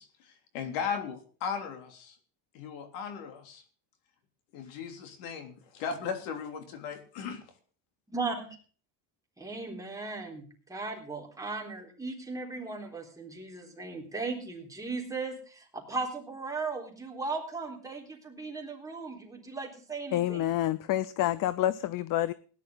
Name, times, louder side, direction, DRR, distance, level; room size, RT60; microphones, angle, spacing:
voice 1, 0.0-2.1 2.5-3.6 4.5-7.4, left 6 dB, 80° left, 6 dB, 3.4 m, -37 dB
voice 2, 8.1-8.5 9.4-20.5, right 3 dB, 5° right, -1 dB, 3.8 m, -37 dB
voice 3, 20.1-22.3, left 13 dB, 45° left, 18 dB, 0.6 m, -28 dB
17.5 x 11.0 x 3.9 m, 0.41 s
cardioid pair, 125°, 48 cm